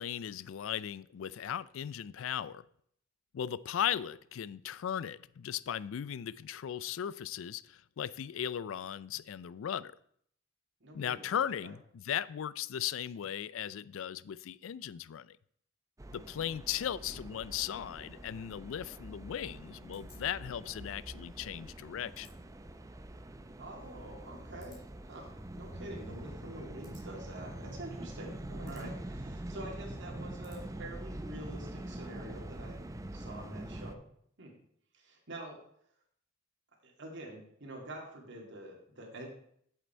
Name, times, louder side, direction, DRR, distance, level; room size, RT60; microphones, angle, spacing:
voice 1, 0.0-2.7 3.3-10.0 10.9-15.4 16.1-22.3, left 9 dB, 85° left, 0.4 m, -37 dB
voice 2, 10.8-11.3 11.6-11.7 17.1-17.2 23.6-32.8 33.1-34.0 34.4-34.6 34.9-35.6 36.8-39.3, right 1 dB, 65° right, 2.4 m, -46 dB
sound 1, 16.0-33.9, right 1 dB, 15° right, 0.5 m, -45 dB
sound 2, 19.9-31.1, equal, ahead, 3.7 m, -65 dB
7.9 x 7.7 x 4.4 m
head